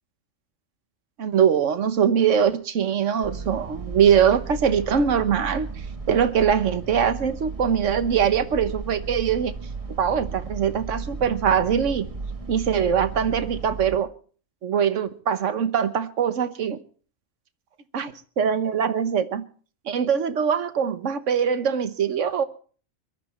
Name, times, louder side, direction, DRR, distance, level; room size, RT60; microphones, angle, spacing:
voice 1, 1.2-5.7 6.1-9.5 10.0-12.1 12.5-14.1 14.6-16.8 17.9-19.4 19.8-22.4, right 7 dB, 80° right, 1.4 m, -22 dB
sound 1, 3.2-14.0, right 4 dB, 25° right, 1.5 m, -35 dB
23.0 x 12.0 x 4.4 m
omnidirectional pair, 1.3 m